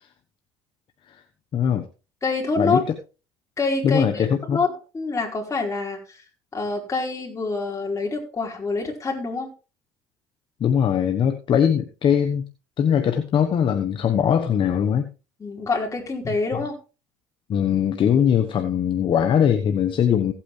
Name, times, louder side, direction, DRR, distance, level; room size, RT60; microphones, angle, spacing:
voice 1, 1.5-1.9 2.6-2.8 3.8-4.6 10.6-12.5 12.8-15.1 16.5-16.6 17.5-20.3, left 8 dB, 50° left, 7 dB, 1.2 m, -21 dB
voice 2, 2.2-2.8 3.6-6.2 6.5-9.5 15.4-16.8, left 3 dB, 25° left, 1 dB, 4.5 m, -26 dB
16.5 x 8.7 x 3.3 m, 0.33 s
supercardioid pair, 85°, 11 cm